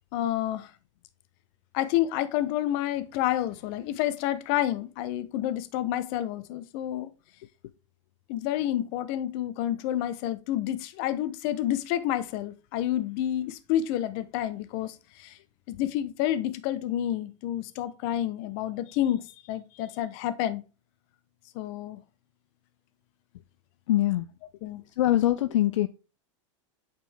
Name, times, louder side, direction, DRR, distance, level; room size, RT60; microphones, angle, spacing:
voice 1, 0.1-0.7 1.7-7.1 8.3-15.4 15.7-20.6 21.5-22.0 24.6-24.8, left 12 dB, 55° left, 1.0 m, -29 dB
voice 2, 23.9-24.3 25.0-25.9, left 14 dB, 75° left, 0.5 m, -23 dB
8.5 x 4.4 x 3.5 m
hypercardioid pair, 100°, 16 cm